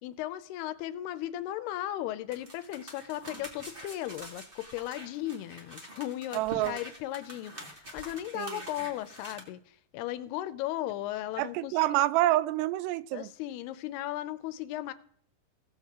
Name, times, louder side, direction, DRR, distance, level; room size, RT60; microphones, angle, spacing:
voice 1, 0.0-11.8 13.1-14.9, left 14 dB, 80° left, 2.5 m, -36 dB
sound 1, 2.3-9.4, right 1 dB, 50° right, 0.6 m, -46 dB
voice 2, 6.3-6.8 8.4-8.6 11.4-13.3, right 15 dB, 85° right, 2.7 m, -27 dB
18.0 x 7.3 x 3.6 m
omnidirectional pair, 4.8 m